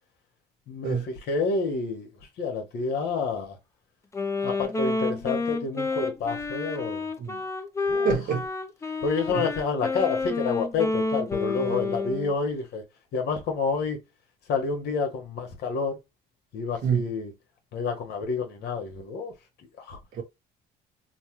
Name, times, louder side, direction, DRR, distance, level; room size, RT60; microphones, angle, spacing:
voice 1, 0.7-2.1 2.4-3.6 4.4-7.1 7.9-8.1 9.0-12.8 13.1-14.0 14.5-16.0 16.5-17.3 17.7-19.3 19.8-20.0, left 4 dB, 75° left, 1.2 m, -29 dB
Wind instrument woodwind instrument, 4.1-12.3, left 3 dB, 15° left, 0.6 m, -29 dB
voice 2, 8.0-8.5 9.3-9.5 11.6-11.8 16.8-17.1 20.1-20.2, right 7 dB, 55° right, 1.0 m, -27 dB
3.2 x 2.1 x 3.0 m
cardioid pair, 110°, 17 cm